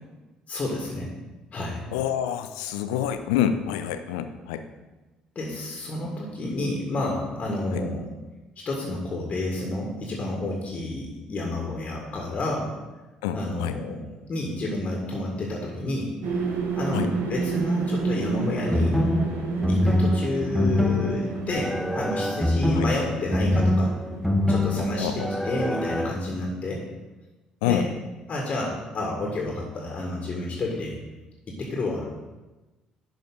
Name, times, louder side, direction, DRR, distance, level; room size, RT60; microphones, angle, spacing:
voice 1, 0.5-1.1 1.5-1.8 5.4-8.1 8.7-12.7 13.3-16.5 16.8-19.0 19.7-23.9 24.5-26.8 27.7-27.9 28.3-31.0 31.5-32.1, left 2 dB, 40° left, -1 dB, 1.9 m, -30 dB
voice 2, 1.9-4.6 7.7-7.8 13.2-13.7 16.9-17.1 22.7-22.9 25.0-25.3 27.6-27.9, left 10 dB, 70° left, 9 dB, 0.5 m, -27 dB
sound 1, 16.2-25.4, right 4 dB, 60° right, 1.0 m, -31 dB
sound 2, 18.7-26.1, left 1 dB, ahead, 0.8 m, -24 dB
11.5 x 5.2 x 3.9 m, 1.1 s
figure-of-eight pair, 50°, 3 cm